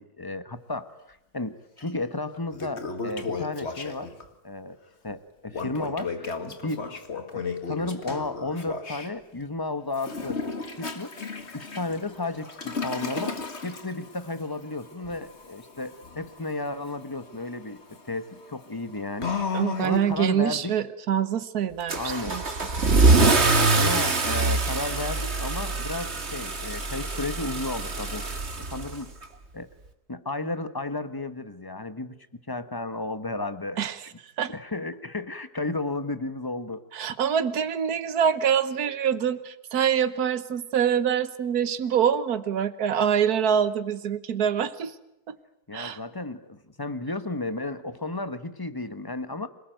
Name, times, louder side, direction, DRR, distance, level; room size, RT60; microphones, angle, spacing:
voice 1, 0.0-4.1 4.4-4.8 5.0-6.9 7.3-10.4 10.7-11.2 11.5-17.8 18.1-20.8 21.9-22.4 23.6-29.1 29.5-29.7 30.1-32.2 32.5-33.9 34.5-36.8 45.7-49.5, left 2 dB, 15° left, 11 dB, 1.1 m, -33 dB
Toilet flush, 1.8-1.9 2.3-4.3 5.5-9.1 9.9-20.3, left 4 dB, 45° left, 2.1 m, -35 dB
voice 2, 19.5-22.0 22.3-22.4 22.8-23.0 33.8-34.0 34.4-34.5 36.9-44.9 45.3-45.4 45.7-46.0, right 8 dB, 70° right, 13 dB, 1.6 m, -25 dB
Car / Engine starting / Accelerating revving vroom, 21.9-29.2, right 3 dB, 45° right, 2.2 m, -24 dB
26.5 x 19.5 x 9.1 m, 0.85 s
omnidirectional pair, 1.7 m